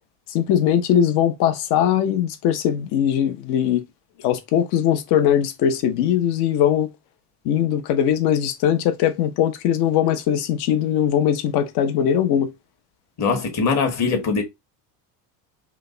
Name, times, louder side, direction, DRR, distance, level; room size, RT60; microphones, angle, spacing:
voice 1, 0.3-3.8 4.2-6.9 7.4-12.5, left 9 dB, 65° left, 1.1 m, -20 dB
voice 2, 13.2-14.4, left 5 dB, 40° left, 1.8 m, -21 dB
5.0 x 2.5 x 3.9 m
cardioid pair, 145°, 42 cm